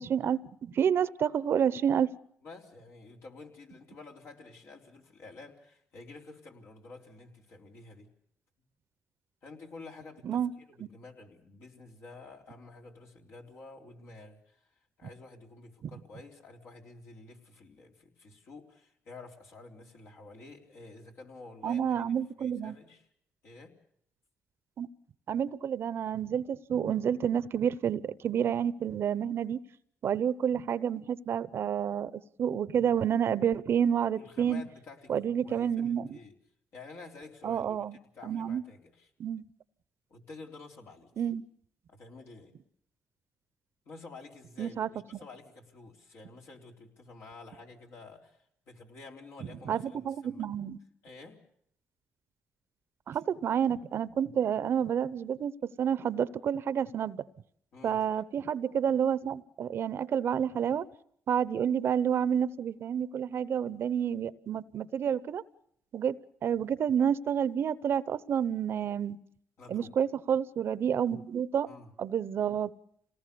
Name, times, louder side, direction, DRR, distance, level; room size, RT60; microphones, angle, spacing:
voice 1, 0.0-2.1 10.2-10.5 21.6-22.7 24.8-24.9 25.3-29.6 30.0-34.6 35.1-36.2 37.4-38.0 38.2-38.6 39.2-39.4 41.2-41.4 44.6-45.2 49.7-50.8 53.1-57.2 57.8-60.9 61.3-65.4 65.9-69.2 69.7-71.7 72.0-72.7, right 8 dB, 60° right, 17 dB, 0.8 m, -29 dB
voice 2, 2.4-8.1 9.4-23.0 23.4-23.8 34.1-36.4 36.7-39.1 40.1-41.2 41.9-42.5 43.9-50.5 51.0-51.4 53.1-53.2 57.7-58.0 69.6-69.9 71.7-71.9, left 3 dB, 70° left, 0 dB, 3.8 m, -50 dB
27.0 x 18.5 x 6.9 m, 0.69 s
supercardioid pair, 70°, 5 cm